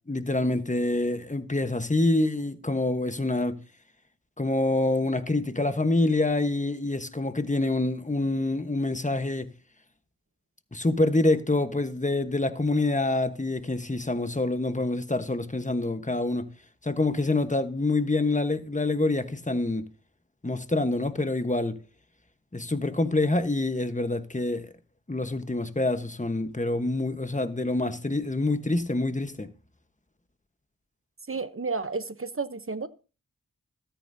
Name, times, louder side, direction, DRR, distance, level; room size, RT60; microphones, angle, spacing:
voice 1, 0.1-3.6 4.4-9.5 10.7-16.5 16.8-19.8 20.4-21.8 22.5-24.7 25.1-29.5, left 2 dB, 20° left, 1.2 m, -26 dB
voice 2, 31.3-32.9, right 4 dB, 40° right, 0.9 m, -31 dB
14.5 x 13.0 x 2.8 m
wide cardioid pair, 50°, 35 cm